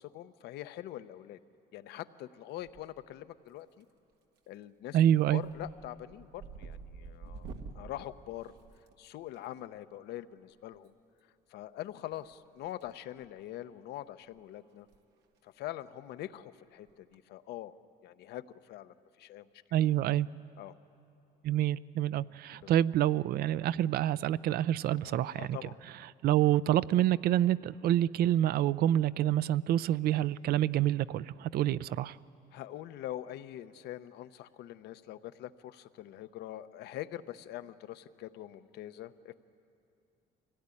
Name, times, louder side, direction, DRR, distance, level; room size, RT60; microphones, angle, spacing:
voice 1, 0.0-1.4 1.7-3.8 4.5-5.0 5.3-7.5 7.7-8.5 9.0-10.9 11.5-14.9 15.4-17.7 18.0-19.5 20.6-20.7 22.5-22.7 25.0-25.8 32.5-39.3, left 13 dB, 80° left, 12 dB, 0.7 m, -44 dB
sound 1, 2.6-3.2 3.5-4.0 4.4-4.6 5.0-9.4 10.7-10.9 12.1-12.9 13.2-13.4 13.9-14.0 14.3-14.4 14.8-15.0 15.2-15.3 16.9-17.1, right 4 dB, 80° right, 1.6 m, -49 dB
voice 2, 4.9-5.4 19.7-20.3 21.4-25.6 26.2-32.2, right 12 dB, 65° right, 18 dB, 0.5 m, -27 dB
24.5 x 17.0 x 9.8 m, 2.6 s
cardioid pair, 110°, 17 cm